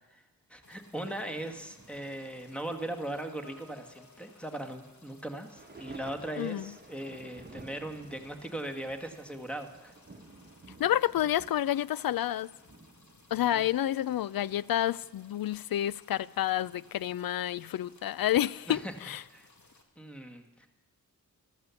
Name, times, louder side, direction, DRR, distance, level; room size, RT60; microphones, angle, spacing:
voice 1, 0.5-9.9 13.5-13.6 18.7-18.9 19.3-19.5 20.0-20.7, right 1 dB, 5° left, 1.7 m, -39 dB
sound 1, 0.6-19.8, left 3 dB, 55° left, 2.2 m, -61 dB
sound 2, 1.0-14.6 14.9-15.2 16.1-16.2, right 3 dB, 30° right, 1.1 m, -54 dB
sound 3, 2.7-5.6, left 2 dB, 35° left, 2.1 m, -55 dB
voice 2, 6.4-6.7 10.8-12.5 13.3-19.2, left 12 dB, 75° left, 0.5 m, -29 dB
14.0 x 13.0 x 7.0 m
cardioid pair, 70°, 36 cm